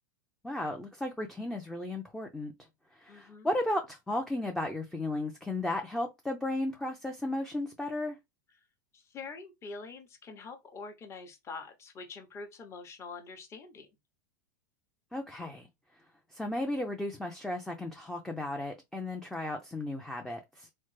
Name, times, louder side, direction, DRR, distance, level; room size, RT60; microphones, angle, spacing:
voice 1, 0.4-2.5 2.9-8.2 15.1-15.7 16.3-20.7, left 1 dB, 5° left, 0.4 m, -34 dB
voice 2, 3.1-3.5 8.9-13.9, left 4 dB, 25° left, 0.8 m, -45 dB
3.1 x 2.0 x 3.1 m
hypercardioid pair, 120°, 10 cm